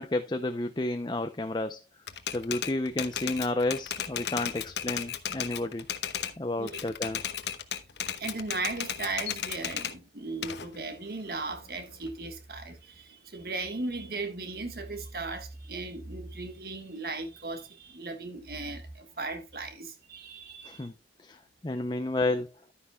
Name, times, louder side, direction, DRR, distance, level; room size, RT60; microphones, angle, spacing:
voice 1, 0.0-1.8 2.3-5.9 6.4-7.2 20.6-20.9 21.2-22.5, left 2 dB, 25° left, 0.5 m, -31 dB
Typewriter, 2.1-6.4 6.7-10.0 10.4-12.1, left 9 dB, 80° left, 0.9 m, -35 dB
voice 2, 8.2-20.9, right 3 dB, 60° right, 1.6 m, -37 dB
11.5 x 9.9 x 2.3 m
head